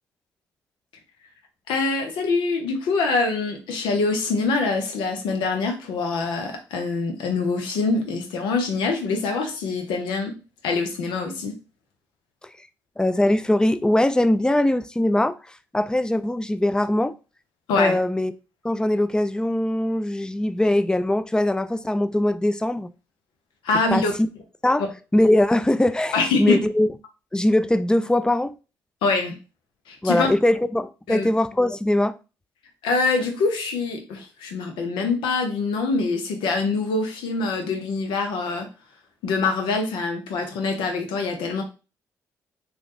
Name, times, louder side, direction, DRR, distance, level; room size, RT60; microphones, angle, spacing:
voice 1, 1.7-10.3 10.6-11.6 17.7-18.0 23.6-24.1 26.1-26.6 29.0-29.4 29.9-30.3 31.1-31.3 32.8-38.7 39.2-41.6, left 3 dB, 80° left, 0.8 m, -24 dB
voice 2, 13.0-15.4 15.7-17.1 17.8-18.3 18.6-22.9 23.9-24.3 24.6-24.8 25.1-26.9 27.3-28.5 30.0-32.2, left 1 dB, 10° left, 0.4 m, -21 dB
3.1 x 2.4 x 3.0 m
hypercardioid pair, 50°, 8 cm